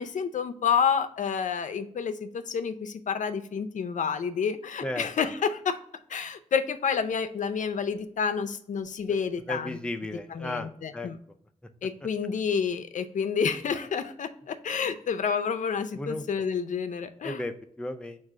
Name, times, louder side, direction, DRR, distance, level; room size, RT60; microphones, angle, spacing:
voice 1, 0.0-5.8 6.1-9.8 10.3-11.2 11.8-17.4, left 6 dB, 75° left, 9 dB, 0.4 m, -29 dB
voice 2, 9.5-11.1 15.9-16.2 17.2-18.2, left 1 dB, 5° left, 6 dB, 0.4 m, -34 dB
4.8 x 2.4 x 4.5 m, 0.65 s
wide cardioid pair, 115°, 13 cm